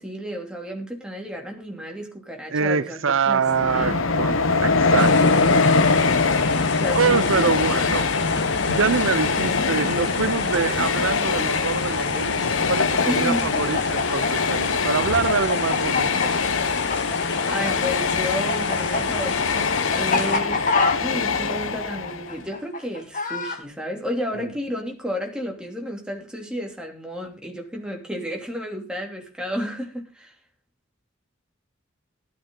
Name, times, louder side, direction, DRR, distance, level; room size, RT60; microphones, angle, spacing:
voice 1, 0.0-4.0 6.7-7.5 13.1-13.5 17.5-20.7 21.0-30.3, equal, 5° right, 3.0 m, -32 dB
voice 2, 2.5-5.4 6.9-8.1 8.7-16.4 24.3-24.5, right 5 dB, 85° right, 0.7 m, -25 dB
Train, 3.4-22.4, left 4 dB, 90° left, 1.1 m, -23 dB
sound 1, 5.0-20.4, left 4 dB, 60° left, 1.9 m, -32 dB
Chicken rooster, 13.3-17.7 18.0-23.6, left 3 dB, 40° left, 2.6 m, -25 dB
15.5 x 12.5 x 3.9 m
head